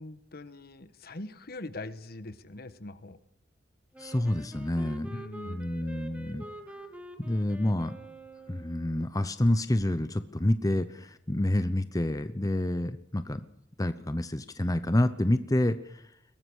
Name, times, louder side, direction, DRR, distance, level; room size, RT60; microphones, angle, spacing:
voice 1, 0.0-3.2 5.1-5.7, left 2 dB, 55° left, 12 dB, 1.4 m, -42 dB
Wind instrument woodwind instrument, 3.9-9.0, right 2 dB, 10° right, 2.2 m, -47 dB
voice 2, 4.0-5.2 5.5-6.4 7.2-7.9 8.5-13.4 13.8-16.1, left 1 dB, 20° left, 11 dB, 0.8 m, -28 dB
22.5 x 18.5 x 6.4 m, 0.75 s
head